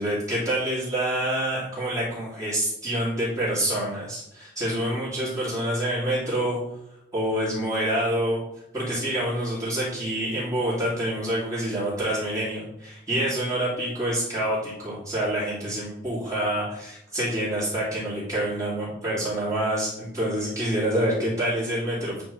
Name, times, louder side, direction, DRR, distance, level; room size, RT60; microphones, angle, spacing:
voice 1, 0.0-6.6 7.1-8.4 8.7-22.2, right 1 dB, 15° right, -9 dB, 2.7 m, -27 dB
9.3 x 3.5 x 4.8 m, 0.83 s
head